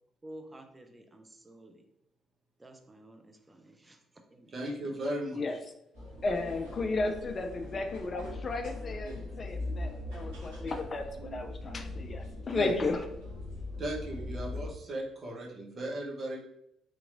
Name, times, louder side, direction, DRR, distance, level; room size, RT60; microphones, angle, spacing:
voice 1, 0.2-1.8 2.6-4.0 4.3-4.6 14.5-15.0, right 1 dB, 20° right, 4 dB, 0.6 m, -51 dB
voice 2, 4.5-5.4 12.4-12.8 13.8-16.5, right 1 dB, 40° right, -2 dB, 1.0 m, -36 dB
sound 1, 5.9-14.7, left 2 dB, 80° right, 1.2 m, -41 dB
voice 3, 6.2-13.0, left 3 dB, 40° left, 6 dB, 0.4 m, -34 dB
3.6 x 2.9 x 2.5 m, 0.78 s
figure-of-eight pair, 45°, 0 cm